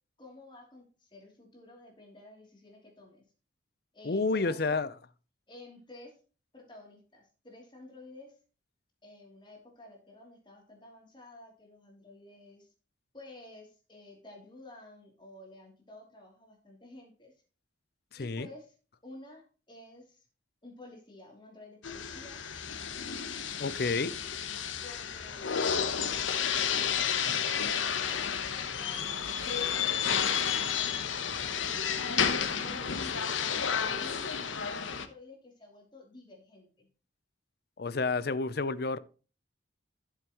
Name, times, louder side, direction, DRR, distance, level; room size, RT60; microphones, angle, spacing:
voice 1, 0.2-3.2 3.9-4.9 5.5-6.2 6.5-8.4 9.0-12.7 13.1-17.3 18.2-18.7 19.0-20.3 20.6-22.4 24.8-30.4 30.7-31.8 32.6-36.9, left 2 dB, 25° left, 3.0 m, -52 dB
voice 2, 4.0-4.9 18.1-18.5 23.6-24.1 37.8-39.0, left 3 dB, 55° left, 0.6 m, -30 dB
sound 1, 21.8-35.1, left 7 dB, 85° left, 1.0 m, -31 dB
sound 2, 29.6-33.6, right 2 dB, 40° right, 3.7 m, -53 dB
12.0 x 7.4 x 3.0 m
head